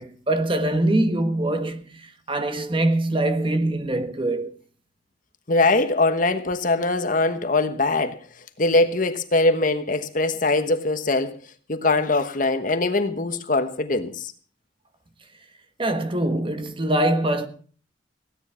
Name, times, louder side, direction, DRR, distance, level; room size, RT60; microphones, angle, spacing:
voice 1, 0.0-4.5 15.8-17.5, right 1 dB, 30° right, 1.3 m, -23 dB
voice 2, 5.5-8.2 8.6-11.4 11.7-14.3, left 2 dB, 45° left, 1.2 m, -22 dB
16.5 x 9.8 x 5.7 m
head